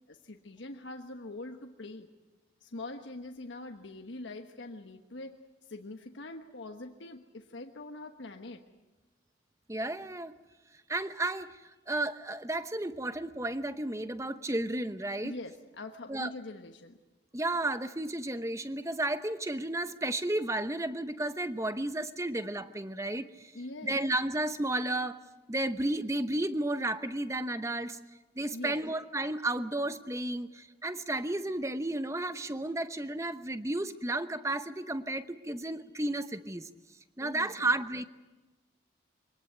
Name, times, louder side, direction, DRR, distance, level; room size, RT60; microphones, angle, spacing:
voice 1, 0.1-2.1 2.6-8.6 15.2-17.0 23.5-24.0 28.5-28.8 37.2-37.8, left 2 dB, 80° left, 4 dB, 1.2 m, -43 dB
voice 2, 9.7-10.3 10.9-15.3 16.1-16.3 17.3-23.5 23.8-25.2 25.5-28.0 28.4-36.7 37.2-38.1, right 1 dB, 15° right, 11 dB, 0.8 m, -33 dB
24.0 x 18.5 x 9.5 m, 1.1 s
head